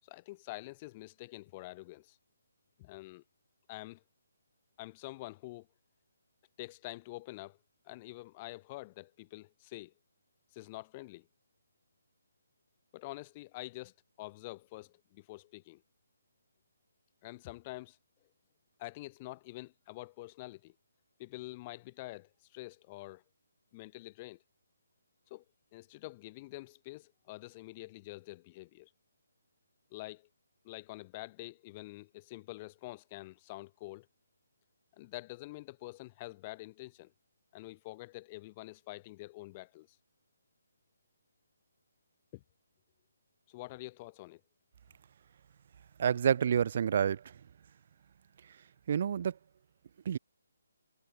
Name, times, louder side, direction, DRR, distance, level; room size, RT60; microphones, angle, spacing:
voice 1, 0.0-2.2 2.8-3.2 3.7-4.0 4.8-5.7 6.6-7.6 7.8-9.9 10.5-11.3 12.9-15.8 17.2-18.0 18.8-20.7 21.2-23.2 23.7-24.4 25.3-25.4 25.7-28.9 29.9-30.3 30.6-34.1 35.0-37.1 37.5-40.0 42.3-42.4 43.5-44.4, left 20 dB, 25° left, 6.1 m, -46 dB
voice 2, 46.0-47.3 48.9-49.4 50.0-50.2, right 8 dB, 45° right, 3.3 m, -28 dB
figure-of-eight pair, 150°, 0 cm